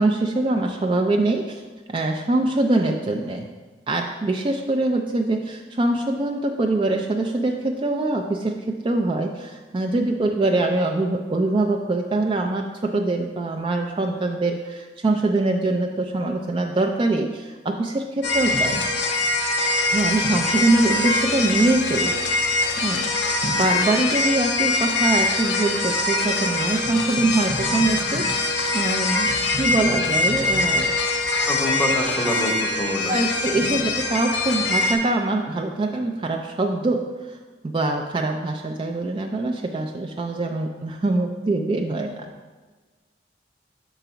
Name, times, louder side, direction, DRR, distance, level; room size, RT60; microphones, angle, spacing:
voice 1, 0.0-1.6 1.9-3.5 3.9-18.8 19.9-22.2 22.8-29.3 29.6-30.9 33.1-37.4 37.6-42.3, right 2 dB, 30° right, 2 dB, 0.3 m, -23 dB
sound 1, 18.2-35.0, left 2 dB, 85° left, 0.8 m, -23 dB
voice 2, 31.5-33.8, left 1 dB, 10° left, 1 dB, 0.8 m, -27 dB
5.9 x 4.0 x 5.6 m, 1.3 s
head